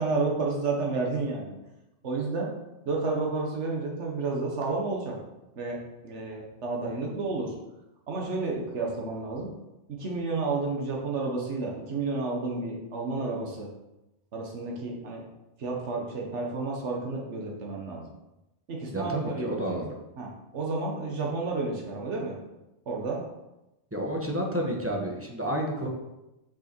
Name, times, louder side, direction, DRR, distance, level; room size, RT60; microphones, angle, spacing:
voice 1, 0.0-1.5 2.0-2.5 2.8-5.2 5.6-5.8 6.0-7.5 8.1-9.5 9.9-13.7 14.3-15.2 15.6-18.0 18.7-19.8 20.2-22.4 22.9-23.2, right 3 dB, 85° right, -1 dB, 1.5 m, -31 dB
voice 2, 18.9-19.9 23.9-25.9, right 1 dB, 10° right, -1 dB, 1.1 m, -30 dB
6.2 x 5.6 x 4.4 m, 0.95 s
omnidirectional pair, 1.2 m